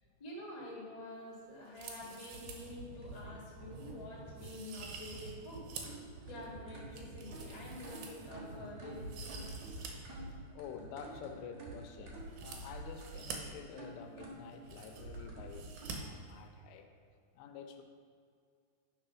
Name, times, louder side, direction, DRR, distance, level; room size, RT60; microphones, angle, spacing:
voice 1, 0.2-5.6 6.3-9.5 9.8-9.9, left 1 dB, 50° left, -7 dB, 0.4 m, -48 dB
sound 1, 1.7-2.7 3.1-3.2 3.8-3.9 4.4-6.0 6.4-8.6 8.9-9.9 10.2-10.3 12.3-13.4 14.2-14.3 14.5-15.2 15.5-16.0 16.2-16.3, right 6 dB, 75° right, 2.6 m, -48 dB
sound 2, 2.3-15.9, right 2 dB, 55° right, 2.1 m, -48 dB
voice 2, 10.5-16.9 17.4-17.8, left 6 dB, 85° left, 5 dB, 3.0 m, -49 dB
8.9 x 4.9 x 5.6 m, 2.3 s
omnidirectional pair, 4.9 m